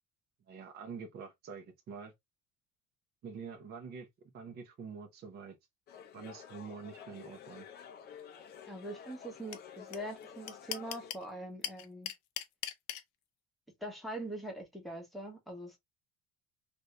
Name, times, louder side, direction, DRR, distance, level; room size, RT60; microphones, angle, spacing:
voice 1, 0.5-2.1 3.2-4.1 4.3-5.6 6.1-7.7, right 5 dB, 30° right, 0.7 m, -46 dB
sound 1, 5.9-11.1, left 8 dB, 35° left, 0.6 m, -51 dB
voice 2, 8.7-12.1 13.8-15.8, right 1 dB, ahead, 1.0 m, -43 dB
sound 2, 9.5-9.6 9.9-10.0 10.2-11.2 11.6-13.0, left 12 dB, 70° left, 0.7 m, -37 dB
2.7 x 2.6 x 3.2 m
cardioid pair, 155°, 31 cm